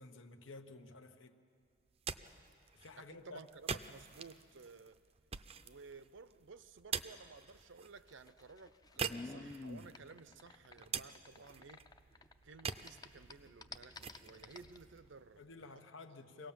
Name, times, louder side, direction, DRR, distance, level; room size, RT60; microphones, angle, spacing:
voice 1, 0.0-1.4 2.7-3.4 15.4-16.5, left 3 dB, 85° left, 1.1 m, -52 dB
sound 1, 1.8-15.7, right 6 dB, 30° right, 0.5 m, -47 dB
voice 2, 3.1-5.0 5.6-11.9 12.4-15.5, right 4 dB, 75° right, 0.6 m, -55 dB
sound 2, 8.0-12.3 12.6-14.8, left 3 dB, 20° left, 0.5 m, -50 dB
25.0 x 18.0 x 7.3 m
head